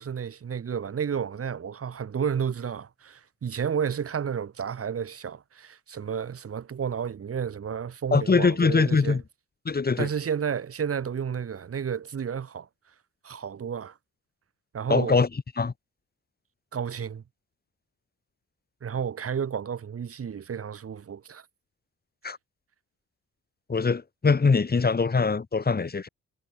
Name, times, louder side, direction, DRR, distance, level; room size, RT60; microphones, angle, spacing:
voice 1, 0.0-9.2 10.0-12.7 13.2-14.0 14.7-15.2 16.7-17.2 18.8-21.5, right 7 dB, 50° right, 5.2 m, -31 dB
voice 2, 8.1-9.2 9.7-10.1 14.9-15.3 15.6-15.7 22.2-22.4 23.7-26.1, left 4 dB, 30° left, 7.0 m, -22 dB
cardioid pair, 90°, 30 cm